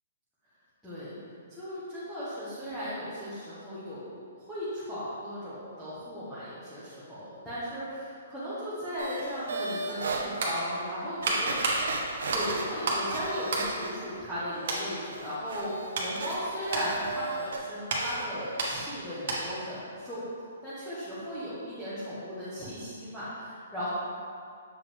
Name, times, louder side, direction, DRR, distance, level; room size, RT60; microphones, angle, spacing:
voice 1, 0.8-1.2 1.5-11.8 12.3-20.2 20.6-23.9, equal, ahead, -14 dB, 1.1 m, -36 dB
sound 1, 9.0-10.2 10.8-10.9 11.2-14.2 14.5-17.6 17.9-18.2 18.6-18.7, right 3 dB, 75° right, 0.9 m, -36 dB
sound 2, 10.4-13.1 13.4-14.4 14.6-14.9 15.4-19.7 20.0-20.1, right 2 dB, 50° right, 1.3 m, -33 dB
7.4 x 4.7 x 3.4 m, 2.3 s
hypercardioid pair, 170°, 0 cm